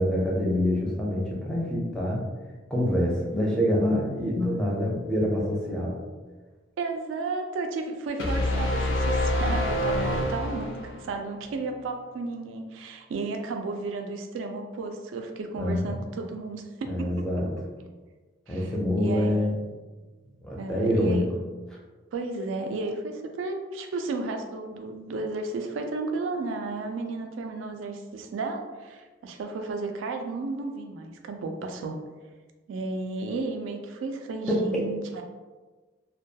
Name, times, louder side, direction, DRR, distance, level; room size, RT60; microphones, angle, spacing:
voice 1, 0.0-2.2 2.7-6.0 15.6-15.9 16.9-17.5 18.5-19.5 20.4-21.2 34.5-34.8, equal, 5° left, -4 dB, 0.4 m, -26 dB
voice 2, 6.8-17.1 18.5-18.7 19.0-19.6 20.6-21.3 22.1-32.0 32.7-35.2, right 3 dB, 85° right, 4 dB, 0.3 m, -33 dB
sound 1, 8.2-11.1, left 1 dB, 90° left, 0.5 m, -26 dB
2.2 x 2.2 x 2.6 m, 1.3 s
head